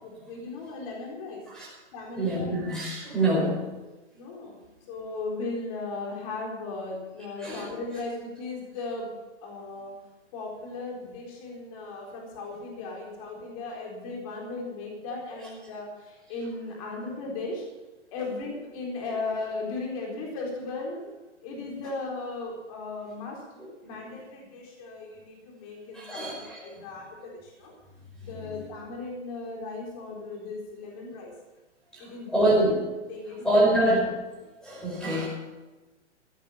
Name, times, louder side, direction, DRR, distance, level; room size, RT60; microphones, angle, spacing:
voice 1, 0.0-1.4 1.9-2.5 4.1-9.1 9.4-9.9 10.3-17.6 18.1-21.0 21.4-23.4 23.8-26.3 26.6-27.7 28.2-31.3 32.0-32.5 33.1-33.7, left 3 dB, 30° left, -1 dB, 4.1 m, -36 dB
voice 2, 2.2-3.6 7.4-7.7 23.6-23.7 25.9-26.6 28.4-28.5 31.9-32.8 33.4-34.0 34.6-35.3, right 1 dB, ahead, -5 dB, 5.2 m, -25 dB
15.0 x 10.0 x 7.2 m, 1.1 s
hypercardioid pair, 165°, 36 cm